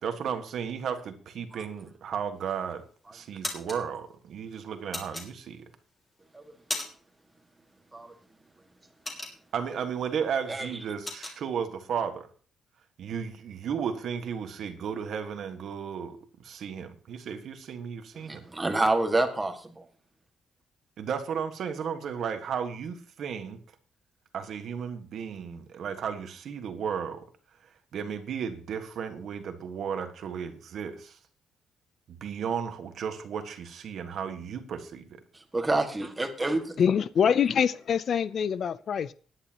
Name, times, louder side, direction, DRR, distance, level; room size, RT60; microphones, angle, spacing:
voice 1, 0.0-2.8 3.1-5.7 9.5-12.3 13.0-18.5 21.0-23.6 24.3-27.3 27.9-31.2 32.1-35.2, right 7 dB, 55° right, 1.5 m, -34 dB
sound 1, 2.4-2.8 3.2-3.8 4.9-5.8 6.2-7.2 7.5-7.7 8.1-9.8 10.2-10.3 10.6-11.4, left 2 dB, 15° left, 2.8 m, -36 dB
voice 2, 18.1-19.9 35.5-36.7, right 2 dB, 15° right, 1.8 m, -28 dB
voice 3, 36.8-39.1, left 7 dB, 45° left, 0.4 m, -25 dB
19.0 x 10.0 x 2.9 m
cardioid pair, 160°, 0 cm